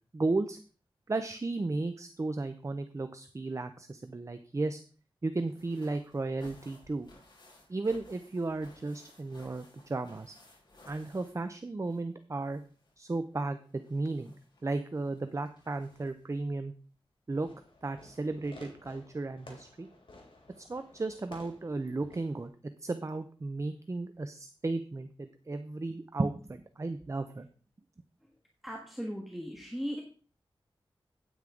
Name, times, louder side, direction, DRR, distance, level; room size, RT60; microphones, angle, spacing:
voice 1, 0.1-0.6 1.1-4.8 5.2-7.1 7.7-10.3 10.9-12.6 13.0-14.3 14.6-16.7 17.3-17.5 17.8-19.9 20.6-22.5 22.8-27.5, right 3 dB, 35° right, 9 dB, 0.6 m, -34 dB
sound 1, 5.4-12.1 12.4-16.4 17.4-17.5 17.8-17.9, left 1 dB, 55° left, 5.4 m, -59 dB
Fireworks, 17.3-22.5, left 2 dB, 75° left, 3.2 m, -54 dB
voice 2, 28.6-30.0, equal, ahead, 0 dB, 1.5 m, -38 dB
9.4 x 9.2 x 3.8 m, 0.40 s
wide cardioid pair, 95°, 9 cm